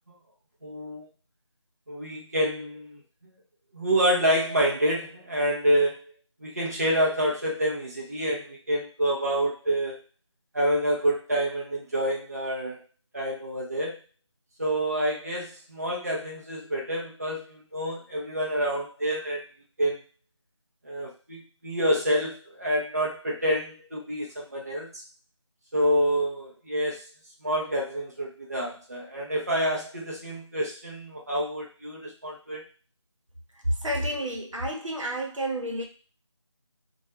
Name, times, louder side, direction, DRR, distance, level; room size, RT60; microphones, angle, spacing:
voice 1, 0.6-1.1 1.9-3.0 3.7-6.1 6.4-10.0 10.5-12.8 13.1-14.0 14.6-19.4 19.8-20.0 20.8-24.9 25.7-27.0 27.4-32.6, equal, 30° right, -3 dB, 0.4 m, -27 dB
voice 2, 33.8-35.8, right 1 dB, 80° right, 1 dB, 0.8 m, -30 dB
2.2 x 2.0 x 2.8 m, 0.35 s
figure-of-eight pair, 170°, 16 cm